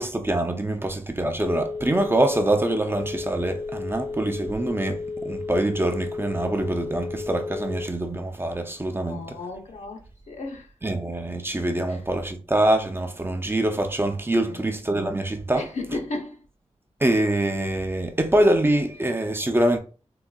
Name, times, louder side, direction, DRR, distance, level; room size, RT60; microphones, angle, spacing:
voice 1, 0.0-9.4 10.8-15.6 17.0-19.8, right 1 dB, 20° right, 0.4 m, -24 dB
Telephone, 0.8-8.2, left 4 dB, 45° left, 0.5 m, -33 dB
voice 2, 9.0-10.7 11.9-12.0 14.5-14.7 15.5-16.4, left 2 dB, 90° left, 0.7 m, -34 dB
3.7 x 2.3 x 2.2 m
wide cardioid pair, 90°, 12 cm